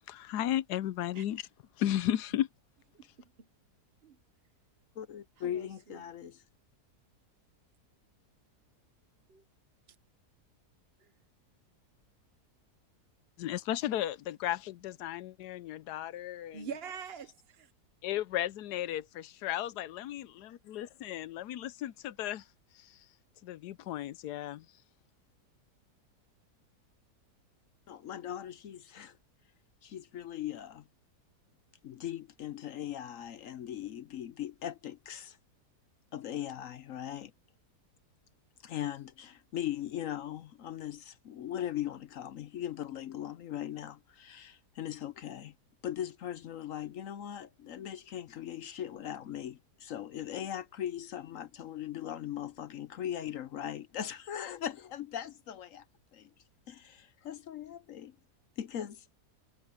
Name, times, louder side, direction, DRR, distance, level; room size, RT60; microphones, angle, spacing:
voice 1, 0.1-1.4 1.8-2.5 13.4-16.7 18.0-22.4 23.4-24.6, left 12 dB, 85° left, 1.2 m, -34 dB
voice 2, 2.9-3.5 4.0-4.2 5.4-6.0 9.3-9.4 9.9-10.0 11.0-11.1 16.5-17.7, right 7 dB, 45° right, 1.0 m, -45 dB
voice 3, 5.0-6.4 27.9-29.2 29.8-30.9 31.8-35.4 36.1-37.3 38.6-45.5 45.8-55.8 56.1-56.3 56.7-58.1 58.6-59.1, left 11 dB, 65° left, 0.9 m, -39 dB
omnidirectional pair, 1.7 m